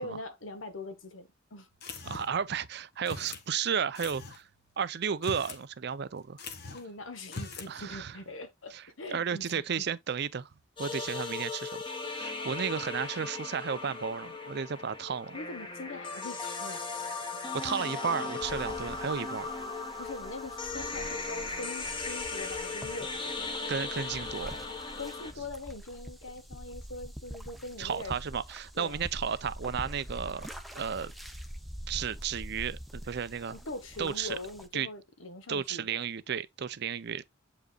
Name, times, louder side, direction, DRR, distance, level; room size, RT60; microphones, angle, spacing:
voice 1, 0.0-1.7 6.7-9.8 15.3-16.8 17.3-17.5 20.0-23.6 25.0-28.1 28.7-29.0 33.5-36.0, left 2 dB, 75° left, 1.3 m, -42 dB
sound 1, 1.8-2.5 3.0-3.5 3.9-4.4 5.1-5.6 5.9-6.0 6.4-6.9 7.2-7.7, left 3 dB, 55° left, 1.3 m, -41 dB
voice 2, 2.0-4.5 4.8-6.4 7.7-8.2 8.7-8.8 9.1-10.5 10.8-11.8 12.1-15.4 17.6-19.5 23.7-24.6 27.8-30.5 30.7-31.1 31.9-33.6 34.0-34.4 34.7-34.9 35.5-37.2, right 7 dB, 55° right, 0.5 m, -33 dB
sound 2, 10.8-25.3, left 4 dB, 25° left, 1.3 m, -37 dB
sound 3, 18.4-34.7, equal, ahead, 0.7 m, -45 dB
7.9 x 5.0 x 2.4 m
head